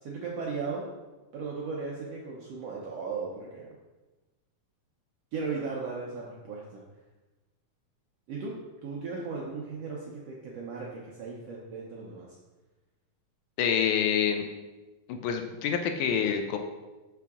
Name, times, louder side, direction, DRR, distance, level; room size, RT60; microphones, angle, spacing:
voice 1, 0.0-0.9 1.3-3.7 5.3-6.8 8.3-12.3, right 4 dB, 75° right, -3 dB, 1.4 m, -36 dB
voice 2, 13.6-14.5 15.1-16.6, left 7 dB, 80° left, 5 dB, 2.0 m, -27 dB
5.9 x 5.7 x 3.5 m, 1.2 s
omnidirectional pair, 3.7 m